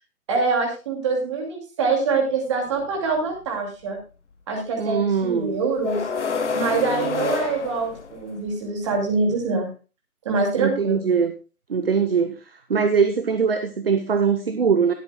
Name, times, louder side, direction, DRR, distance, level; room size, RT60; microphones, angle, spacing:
voice 1, 0.3-4.0 4.5-6.1 6.5-9.7 10.2-11.0, right 4 dB, 20° right, 0 dB, 2.4 m, -24 dB
sound 1, 2.7-2.8 5.8-8.5, left 5 dB, 50° left, 1.4 m, -28 dB
voice 2, 4.8-5.6 10.6-11.3 11.7-14.9, right 6 dB, 40° right, 8 dB, 1.0 m, -22 dB
20.5 x 8.1 x 2.2 m, 0.33 s
hypercardioid pair, 165°, 45 cm